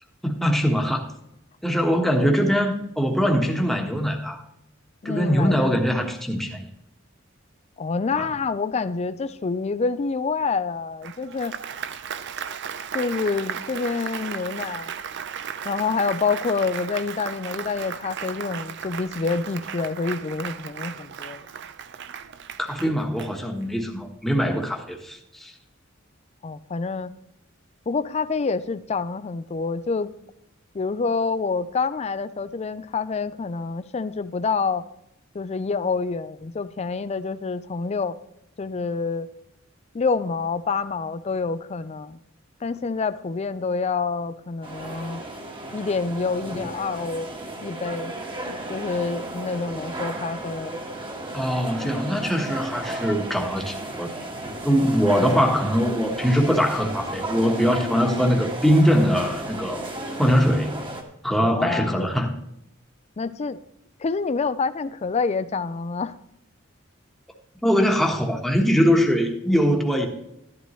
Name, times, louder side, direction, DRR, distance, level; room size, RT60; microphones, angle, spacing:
voice 1, 0.2-1.0 1.6-4.4 5.0-6.6 8.1-8.3 22.6-25.5 51.3-54.1 54.6-59.9 60.2-60.8 61.2-62.3 67.6-70.1, equal, ahead, 2 dB, 1.3 m, -22 dB
voice 2, 2.2-2.5 5.0-5.8 7.8-11.5 12.9-14.9 15.6-21.4 26.4-27.1 27.9-30.1 30.7-34.8 35.3-38.2 38.6-39.3 39.9-42.2 42.6-45.2 45.7-47.3 47.6-48.1 48.7-50.8 55.1-55.5 61.4-62.1 63.2-63.6 64.0-66.1, left 4 dB, 35° left, 13 dB, 0.4 m, -27 dB
Applause, 11.0-23.8, right 7 dB, 60° right, 0.5 m, -35 dB
sound 1, 44.6-61.0, right 1 dB, 25° right, 1.4 m, -34 dB
13.0 x 11.0 x 3.1 m, 0.80 s
head